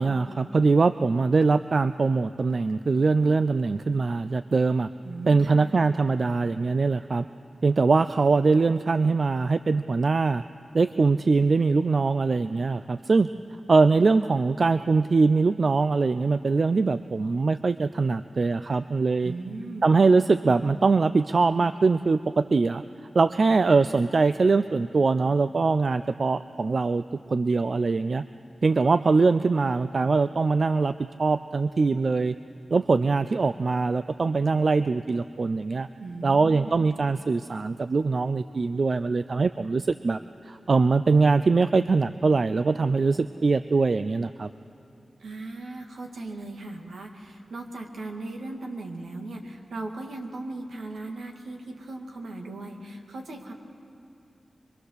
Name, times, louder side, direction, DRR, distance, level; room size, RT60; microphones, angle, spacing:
voice 1, 0.0-4.9 5.3-7.3 7.6-10.4 10.7-13.3 13.7-19.3 19.8-22.8 23.1-27.0 27.3-28.2 28.6-30.9 31.2-32.4 32.7-35.9 36.2-40.2 40.4-44.5, right 4 dB, 65° right, 12 dB, 0.4 m, -22 dB
voice 2, 5.0-5.7 19.2-19.9 36.0-36.9 45.2-53.5, right 2 dB, 85° right, 2 dB, 2.1 m, -38 dB
23.5 x 23.0 x 6.6 m, 2.8 s
cardioid pair, 40°, 0 cm